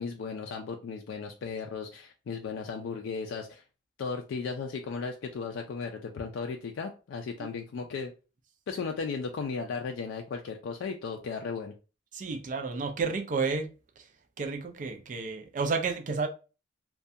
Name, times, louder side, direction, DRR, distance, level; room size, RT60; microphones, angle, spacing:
voice 1, 0.0-3.6 4.0-8.1 8.7-11.7, left 5 dB, 80° left, 0.3 m, -35 dB
voice 2, 12.1-13.7 14.4-16.3, right 4 dB, 40° right, 0.3 m, -31 dB
2.4 x 2.2 x 2.6 m
head